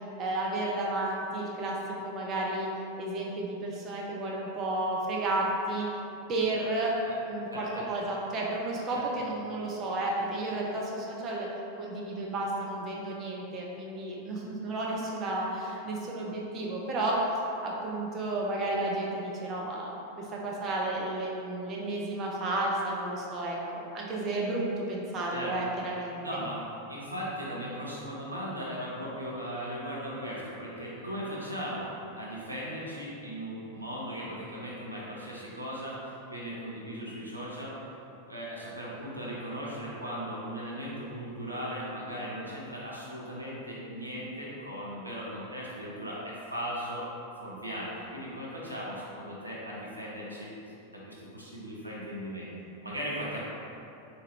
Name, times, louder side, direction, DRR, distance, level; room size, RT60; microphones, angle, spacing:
voice 1, 0.2-1.8 2.0-2.7 3.0-5.9 6.3-6.9 7.2-11.5 11.8-17.2 17.6-19.9 20.3-26.2, right 2 dB, 30° right, -3 dB, 0.5 m, -32 dB
voice 2, 7.5-8.1 8.9-9.0 25.3-25.5 26.2-26.6 26.9-36.0 36.3-37.7 38.2-47.1 47.4-50.5 50.9-52.5 52.8-53.4, equal, 85° right, -6 dB, 0.7 m, -38 dB
3.8 x 2.7 x 3.2 m, 2.9 s
figure-of-eight pair, 90°, 0 cm